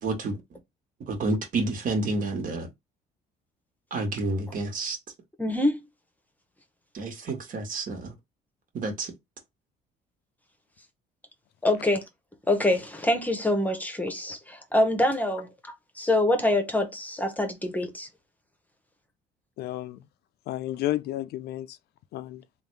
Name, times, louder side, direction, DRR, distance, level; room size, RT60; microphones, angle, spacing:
voice 1, 0.0-0.4 1.1-2.7 3.9-5.0 6.9-8.1 8.7-9.1, right 2 dB, 55° right, 1.5 m, -29 dB
voice 2, 5.4-5.8 11.6-12.0 12.5-15.5 16.0-18.1, left 1 dB, 10° left, 0.9 m, -25 dB
voice 3, 19.6-20.0 20.5-21.8 22.1-22.4, left 14 dB, 75° left, 0.4 m, -31 dB
3.5 x 2.5 x 3.3 m
cardioid pair, 110°, 17 cm